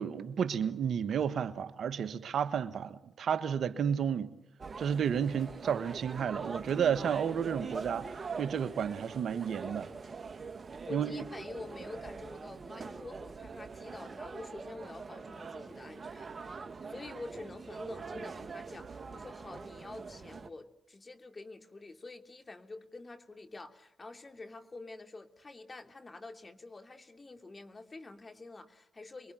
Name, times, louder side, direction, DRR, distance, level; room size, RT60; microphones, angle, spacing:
voice 1, 0.0-4.3 4.8-9.9 10.9-11.2, right 7 dB, 70° right, 1.4 m, -32 dB
sound 1, 4.6-20.5, right 4 dB, 50° right, 2.1 m, -43 dB
voice 2, 10.8-16.3 16.8-29.3, left 3 dB, 40° left, 3.0 m, -47 dB
28.0 x 23.0 x 9.2 m
supercardioid pair, 40°, 0 cm